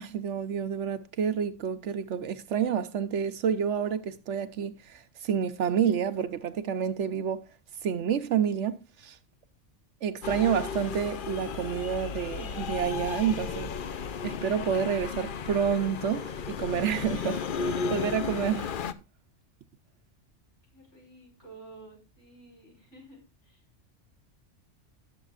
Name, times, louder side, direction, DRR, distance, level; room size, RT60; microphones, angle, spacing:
voice 1, 0.0-7.4 7.8-9.2 10.0-13.7 14.2-18.7, right 8 dB, 75° right, 1.0 m, -29 dB
sound 1, 10.2-18.9, left 6 dB, 50° left, 0.7 m, -34 dB
voice 2, 20.7-23.6, right 3 dB, 70° left, 6.2 m, -51 dB
19.0 x 7.3 x 2.4 m
omnidirectional pair, 1.2 m